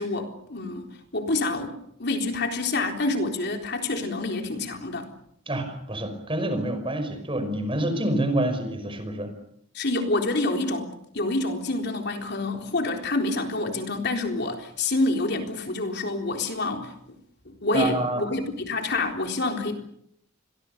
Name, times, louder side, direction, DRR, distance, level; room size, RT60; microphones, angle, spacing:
voice 1, 0.0-5.1 9.7-17.2 17.5-19.7, left 2 dB, 55° left, 4 dB, 3.9 m, -27 dB
voice 2, 5.5-9.3 17.7-18.2, right 1 dB, 25° right, 8 dB, 5.5 m, -27 dB
30.0 x 23.5 x 6.8 m, 0.74 s
head